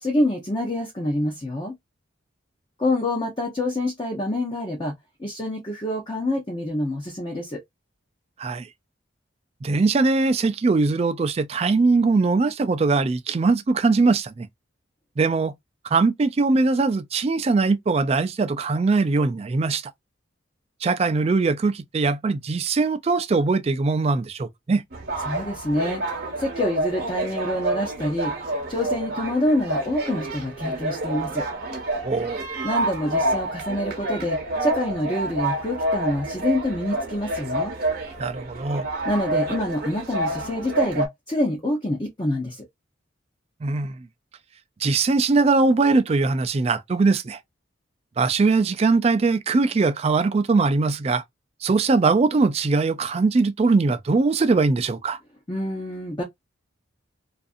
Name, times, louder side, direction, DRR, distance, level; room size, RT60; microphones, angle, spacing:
voice 1, 0.0-1.7 2.8-4.9 5.2-7.6 25.2-26.0 26.4-31.5 32.6-37.7 39.0-42.6 55.5-56.2, left 1 dB, 25° left, 0.6 m, -26 dB
voice 2, 9.6-14.5 15.2-15.5 15.8-19.9 20.8-24.8 32.0-32.4 38.2-38.9 43.6-44.1 44.8-47.4 48.2-51.2 51.6-55.2, right 3 dB, 30° right, 0.3 m, -21 dB
sound 1, 24.9-41.1, right 1 dB, 50° right, 0.8 m, -28 dB
2.5 x 2.5 x 2.4 m
head